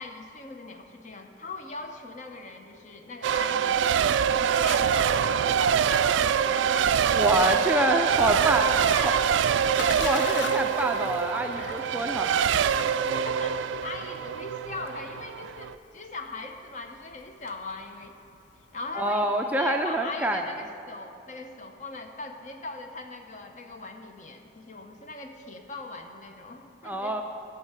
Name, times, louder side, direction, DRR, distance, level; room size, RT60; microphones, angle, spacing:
voice 1, 0.0-3.9 4.3-9.3 10.1-10.4 11.5-11.9 12.6-18.1 18.7-27.2, left 3 dB, 40° left, 5 dB, 0.7 m, -40 dB
Race car auto racing / Accelerating revving vroom / Mechanisms, 3.2-15.7, right 8 dB, 85° right, 0.3 m, -25 dB
voice 2, 7.1-8.7 9.0-9.1 10.0-12.5 18.9-20.4 26.8-27.2, right 1 dB, 10° right, 4 dB, 0.3 m, -26 dB
Splash splatter, 9.2-18.9, left 4 dB, 80° left, 0.6 m, -42 dB
11.5 x 4.5 x 8.0 m, 2.8 s
head